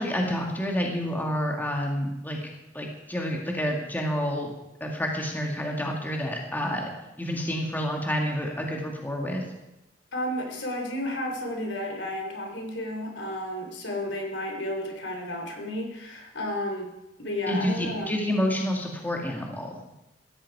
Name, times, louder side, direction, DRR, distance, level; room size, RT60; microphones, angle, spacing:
voice 1, 0.0-2.5 2.7-4.5 4.8-6.9 7.2-9.4 17.5-19.8, equal, 10° left, 0 dB, 2.2 m, -29 dB
voice 2, 10.1-16.9 17.2-18.1, left 1 dB, 75° left, 2 dB, 3.6 m, -32 dB
16.5 x 14.5 x 4.8 m, 0.93 s
head